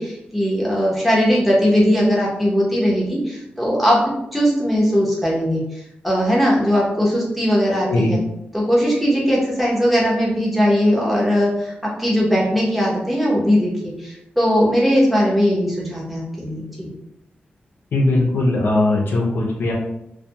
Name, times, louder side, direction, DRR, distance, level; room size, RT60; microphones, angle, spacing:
voice 1, 0.0-4.0 4.3-8.2 8.5-11.7 12.0-16.9, equal, ahead, -5 dB, 0.8 m, -19 dB
voice 2, 17.9-19.7, left 2 dB, 85° left, -2 dB, 0.6 m, -19 dB
2.2 x 2.2 x 2.8 m, 0.83 s
wide cardioid pair, 125°, 4 cm